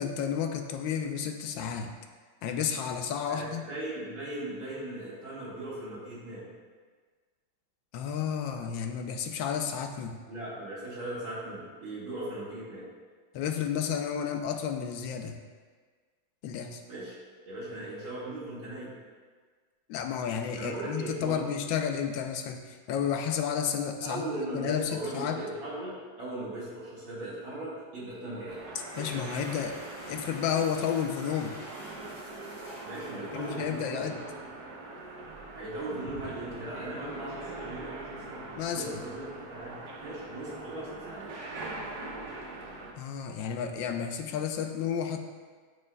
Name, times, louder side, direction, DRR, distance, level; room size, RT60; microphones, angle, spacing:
voice 1, 0.0-1.9 2.4-3.6 7.9-10.2 13.3-15.4 16.4-16.8 19.9-24.3 24.5-25.4 29.0-29.8 30.1-31.6 33.3-34.2 38.6-38.8 43.0-45.2, left 8 dB, 80° left, 5 dB, 1.3 m, -31 dB
voice 2, 3.3-6.5 10.3-12.9 16.9-17.1 17.4-18.9 20.6-21.4 24.0-28.6 32.8-34.1 35.5-41.3, right 1 dB, 75° right, -10 dB, 2.7 m, -38 dB
sound 1, 28.5-42.9, right 2 dB, 60° right, 1.2 m, -42 dB
sound 2, 28.7-34.3, left 1 dB, 50° left, 0.4 m, -51 dB
12.0 x 4.7 x 2.3 m, 1.5 s
omnidirectional pair, 2.1 m